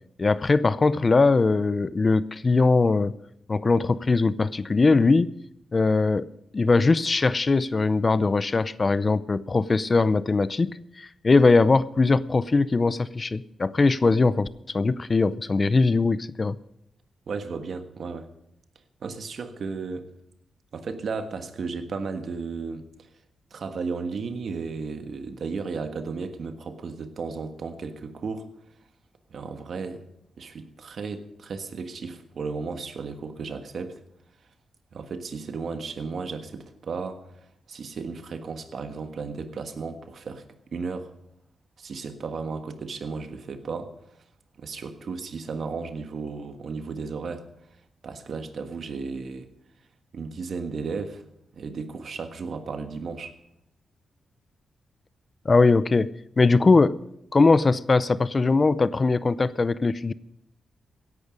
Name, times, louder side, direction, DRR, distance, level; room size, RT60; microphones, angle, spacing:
voice 1, 0.2-3.1 3.5-5.3 5.7-6.3 6.5-16.6 55.5-57.0 57.3-60.1, left 3 dB, 35° left, 17 dB, 0.5 m, -21 dB
voice 2, 17.3-18.3 19.0-20.1 20.7-22.8 23.5-28.5 29.3-30.0 30.4-34.0 34.9-37.2 37.7-40.4 40.7-41.1 41.8-43.9 44.6-47.5 48.0-49.5 50.1-51.2 51.5-53.4, right 4 dB, 65° right, 8 dB, 1.5 m, -34 dB
16.5 x 11.0 x 5.1 m, 0.77 s
cardioid pair, 90°, 0 cm